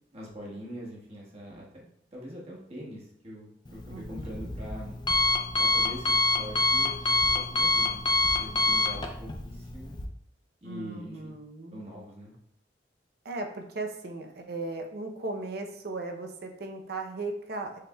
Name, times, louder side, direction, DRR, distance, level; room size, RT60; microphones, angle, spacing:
voice 1, 0.1-4.9 5.6-8.1 8.4-10.0 10.6-11.3 11.7-12.3, equal, 35° right, -3 dB, 1.3 m, -43 dB
Alarm, 3.6-10.0, left 3 dB, 25° left, 0.5 m, -27 dB
voice 2, 3.9-4.5 10.6-11.8 13.2-17.8, right 2 dB, 60° right, 3 dB, 0.7 m, -37 dB
6.5 x 3.4 x 2.3 m, 0.72 s
head